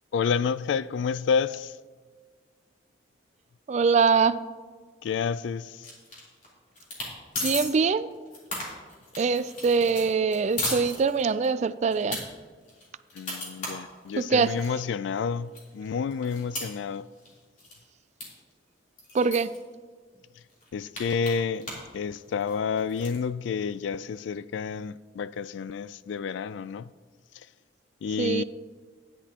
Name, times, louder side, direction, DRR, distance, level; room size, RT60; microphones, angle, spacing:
voice 1, 0.1-1.7 5.0-5.8 13.2-17.1 20.7-21.7 21.9-26.9 28.0-28.4, left 6 dB, 70° left, 0.3 m, -29 dB
voice 2, 3.7-4.4 7.4-8.1 9.2-12.2 14.2-14.5 19.1-19.5 28.2-28.4, right 5 dB, 35° right, 0.3 m, -23 dB
sound 1, 5.8-6.5 6.8-7.1 7.3-7.7 8.1-11.5 11.9-12.2 12.7-14.7 15.2-15.3 15.5-17.3 17.6-17.8 18.2-18.3 18.5-18.6 19.0-19.6 20.1-20.2 20.5-21.9 22.2-23.2, left 1 dB, 40° left, 3.4 m, -35 dB
13.0 x 10.0 x 2.9 m
head